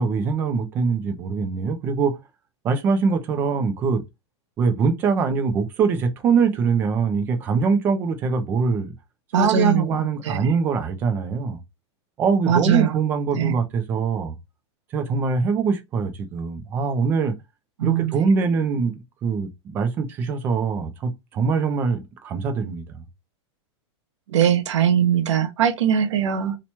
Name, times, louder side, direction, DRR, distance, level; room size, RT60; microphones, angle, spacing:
voice 1, 0.0-2.2 2.6-4.0 4.6-8.9 9.4-11.6 12.2-14.3 14.9-17.4 17.8-23.0, right 5 dB, 15° right, 0.4 m, -23 dB
voice 2, 9.3-10.6 12.5-13.0 13.3-13.5 17.8-18.3 24.3-26.6, right 8 dB, 85° right, 0.8 m, -21 dB
2.9 x 2.2 x 4.1 m
supercardioid pair, 175°, 15 cm